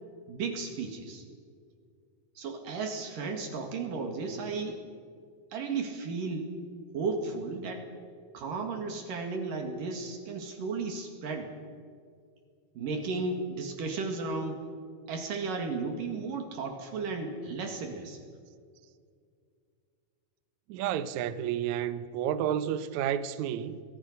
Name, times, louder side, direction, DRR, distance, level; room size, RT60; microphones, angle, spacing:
voice 1, 0.3-1.3 2.4-4.8 5.5-6.5 6.9-7.9 8.3-11.5 12.8-14.6 15.1-18.2, right 4 dB, 60° right, 3.5 m, -34 dB
voice 2, 20.7-23.8, right 10 dB, 85° right, 1.6 m, -31 dB
27.0 x 21.0 x 5.6 m
omnidirectional pair, 4.6 m